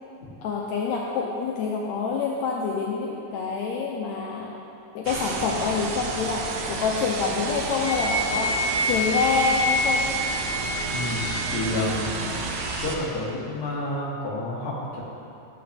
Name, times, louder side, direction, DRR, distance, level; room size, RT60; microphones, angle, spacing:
voice 1, 0.4-4.6 4.9-8.5 8.8-10.1, left 5 dB, 85° left, -2 dB, 1.6 m, -26 dB
sound 1, 5.1-13.0, right 4 dB, 75° right, 1.8 m, -31 dB
Wind instrument woodwind instrument, 7.8-11.5, left 1 dB, 20° left, 1.4 m, -27 dB
voice 2, 10.9-12.1 12.8-15.0, left 2 dB, 50° left, -5 dB, 1.1 m, -30 dB
11.5 x 7.9 x 3.4 m, 2.7 s
omnidirectional pair, 3.9 m